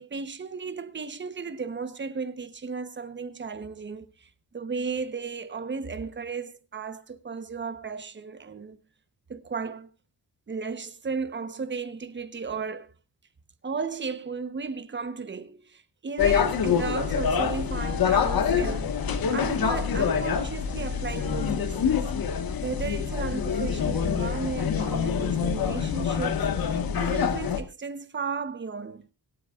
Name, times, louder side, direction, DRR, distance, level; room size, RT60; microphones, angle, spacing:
voice 1, 0.0-4.3 4.5-8.8 9.3-9.9 10.5-12.9 13.6-19.0 19.3-22.0 22.6-26.5 27.0-29.0, right 5 dB, 30° right, 1.1 m, -34 dB
sound 1, 16.2-27.6, left 7 dB, 65° left, 1.6 m, -26 dB
25.0 x 9.3 x 2.5 m
wide cardioid pair, 175°, 39 cm